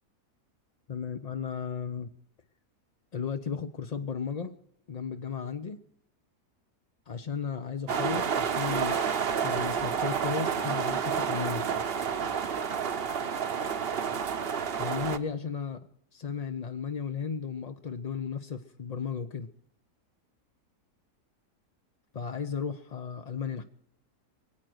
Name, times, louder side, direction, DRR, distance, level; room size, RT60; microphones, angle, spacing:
voice 1, 0.9-2.1 3.1-4.6 4.9-5.8 7.1-9.0 9.4-11.9 14.8-19.5 22.1-23.6, left 6 dB, 50° left, 8 dB, 0.4 m, -35 dB
sound 1, 7.9-15.2, right 7 dB, 45° right, 0.9 m, -30 dB
23.5 x 9.0 x 6.3 m, 0.71 s
omnidirectional pair, 1.6 m